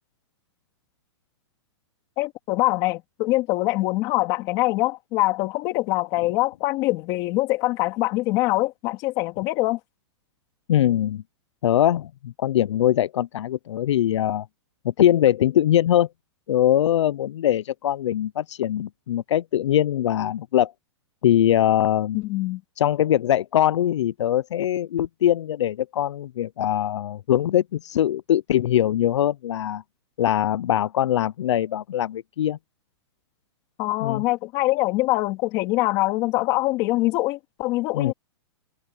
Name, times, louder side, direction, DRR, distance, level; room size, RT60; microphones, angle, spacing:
voice 1, 2.2-9.8 22.1-22.6 33.8-38.1, left 19 dB, 25° left, 2.5 m, -24 dB
voice 2, 10.7-11.2 11.6-14.5 14.8-16.1 16.5-20.7 21.2-22.2 22.8-29.8 30.2-32.6 34.0-34.2 37.9-38.1, left 11 dB, 75° left, 0.5 m, -22 dB
hypercardioid pair, 180°, 15 cm